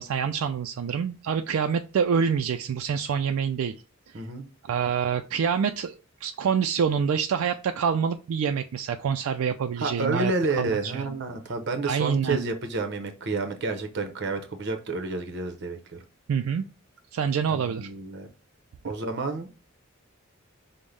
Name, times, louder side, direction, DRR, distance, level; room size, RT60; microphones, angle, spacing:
voice 1, 0.0-3.8 4.1-4.2 4.6-10.3 10.6-11.1 11.9-12.5 16.3-16.6 17.1-17.9, right 7 dB, 80° right, 7 dB, 0.3 m, -26 dB
voice 2, 9.8-16.0 17.5-18.3 18.8-19.5, right 3 dB, 55° right, 6 dB, 0.7 m, -30 dB
5.2 x 2.1 x 3.2 m, 0.33 s
head